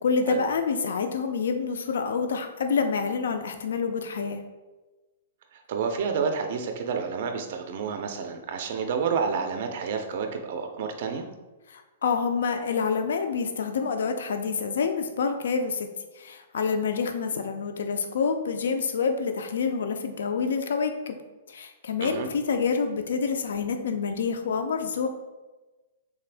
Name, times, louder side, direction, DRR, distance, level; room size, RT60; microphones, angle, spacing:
voice 1, 0.0-4.4 11.7-15.9 16.1-21.2 21.5-25.1, left 5 dB, 80° left, 6 dB, 0.3 m, -27 dB
voice 2, 5.5-11.2 22.0-22.3, right 6 dB, 45° right, 5 dB, 0.3 m, -29 dB
3.5 x 2.5 x 3.3 m, 1.2 s
hypercardioid pair, 170°, 0 cm